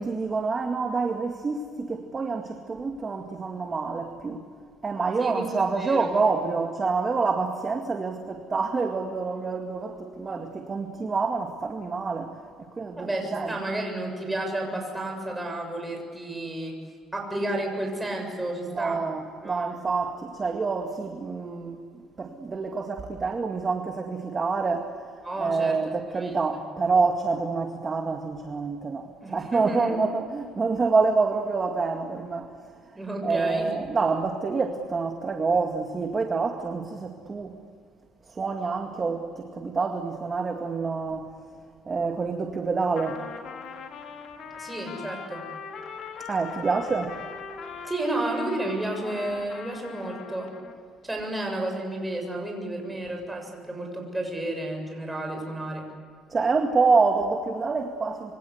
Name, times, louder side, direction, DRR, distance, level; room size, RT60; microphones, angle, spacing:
voice 1, 0.0-4.5 4.8-13.6 18.6-37.6 38.3-41.6 41.9-43.2 46.3-47.2 56.3-58.4, right 4 dB, 25° right, 2.1 m, -27 dB
voice 2, 5.2-6.1 13.0-16.8 17.1-19.0 19.4-19.7 25.2-25.8 26.2-26.3 29.2-30.0 32.9-33.7 44.6-45.5 47.8-50.5 51.0-55.9, right 1 dB, 10° right, 7.3 m, -31 dB
Trumpet, 43.0-50.8, left 6 dB, 55° left, 3.3 m, -40 dB
27.5 x 24.5 x 8.2 m
cardioid pair, 135°, 0 cm